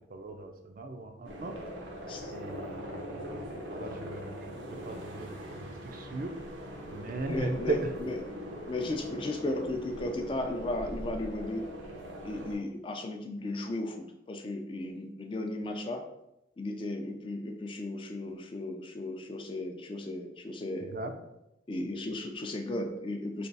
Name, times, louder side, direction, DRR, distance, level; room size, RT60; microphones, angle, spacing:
voice 1, 0.1-1.6 2.3-6.4 6.9-8.0 20.8-21.1, right 3 dB, 50° right, 5 dB, 0.4 m, -37 dB
sound 1, 1.2-12.6, equal, 85° right, 0.7 m, -41 dB
voice 2, 7.3-8.2 8.7-11.6 12.2-16.0 16.6-20.9 21.7-23.5, left 2 dB, 30° left, 4 dB, 0.3 m, -35 dB
3.4 x 2.3 x 3.9 m, 0.86 s
head